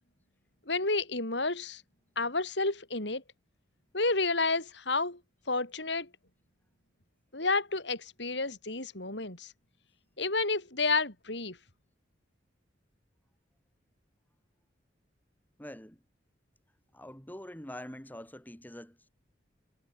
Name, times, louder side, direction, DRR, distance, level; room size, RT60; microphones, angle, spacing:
voice 1, 0.7-1.8 2.2-3.2 3.9-5.2 5.5-6.1 7.3-9.5 10.2-11.6, left 3 dB, 65° left, 6.0 m, -30 dB
voice 2, 15.6-16.0 16.9-19.1, left 1 dB, 10° left, 3.1 m, -45 dB
head